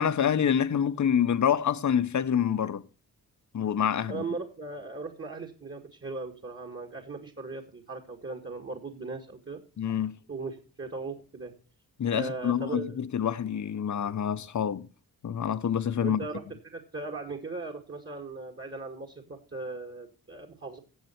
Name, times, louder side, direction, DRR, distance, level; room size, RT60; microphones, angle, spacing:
voice 1, 0.0-2.8 3.5-4.2 9.8-10.2 12.0-14.9 15.2-16.2, left 8 dB, 50° left, 0.9 m, -27 dB
voice 2, 4.1-9.6 10.3-11.5 12.1-13.0 16.0-20.8, right 3 dB, 35° right, 1.9 m, -38 dB
16.0 x 7.5 x 4.4 m
cardioid pair, 80°, 37 cm